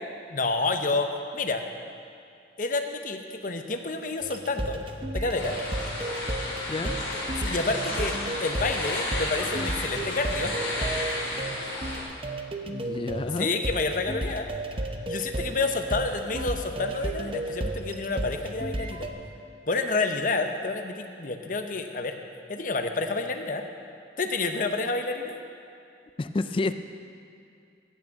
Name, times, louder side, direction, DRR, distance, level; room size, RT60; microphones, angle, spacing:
voice 1, 0.3-1.6 2.6-4.8 5.1-5.6 7.4-10.5 13.4-14.5 15.1-19.1 19.7-22.1 22.5-23.6 24.2-25.4, left 3 dB, 50° left, 6 dB, 0.9 m, -29 dB
sound 1, 4.2-19.1, right 1 dB, 30° right, 0.7 m, -33 dB
sound 2, 5.3-12.0, left 1 dB, 70° left, 3.7 m, -33 dB
voice 2, 12.7-13.6 26.2-26.7, left 3 dB, 30° left, 11 dB, 0.3 m, -29 dB
15.5 x 6.1 x 7.5 m, 2.4 s
head